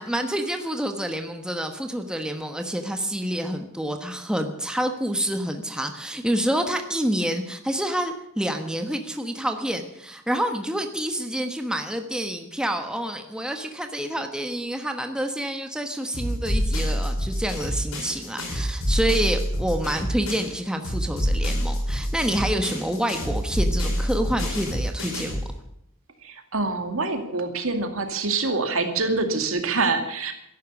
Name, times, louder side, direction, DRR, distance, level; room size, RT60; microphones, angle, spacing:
voice 1, 0.0-25.4, right 1 dB, 5° right, 5 dB, 1.2 m, -28 dB
sound 1, 16.1-20.6 20.8-25.5, equal, 80° left, 6.6 m, -27 dB
voice 2, 26.2-30.3, right 3 dB, 70° right, 6 dB, 2.4 m, -25 dB
14.0 x 11.5 x 8.3 m, 0.77 s
head